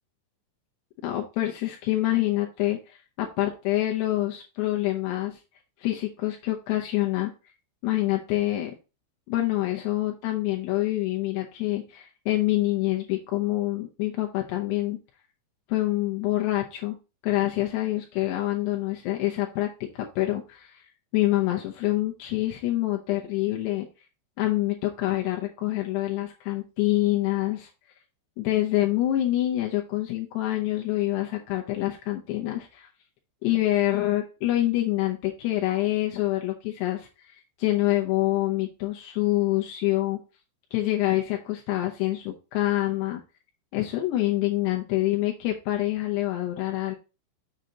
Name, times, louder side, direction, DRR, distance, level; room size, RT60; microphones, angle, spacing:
voice 1, 1.0-5.4 5.8-7.3 7.8-8.7 9.3-15.0 15.7-17.0 17.2-20.8 21.1-23.9 24.4-27.7 28.4-32.9 33.4-37.0 37.2-40.2 40.7-43.2 43.7-47.0, left 16 dB, 90° left, 1 dB, 2.3 m, -26 dB
7.7 x 6.5 x 2.8 m, 0.31 s
omnidirectional pair, 5.9 m